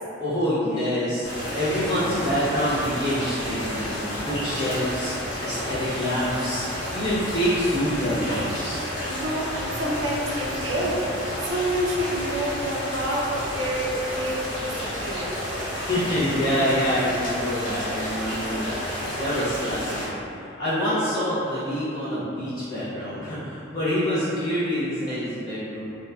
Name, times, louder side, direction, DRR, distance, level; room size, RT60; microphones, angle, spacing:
voice 1, 0.2-6.6 6.9-8.8 15.7-20.0 20.6-26.0, equal, 20° left, -14 dB, 0.4 m, -26 dB
sound 1, 1.2-20.1, equal, 60° left, 1.1 m, -31 dB
voice 2, 9.1-11.1 11.4-15.4, equal, 65° right, -4 dB, 0.4 m, -28 dB
2.7 x 2.1 x 2.2 m, 2.8 s
head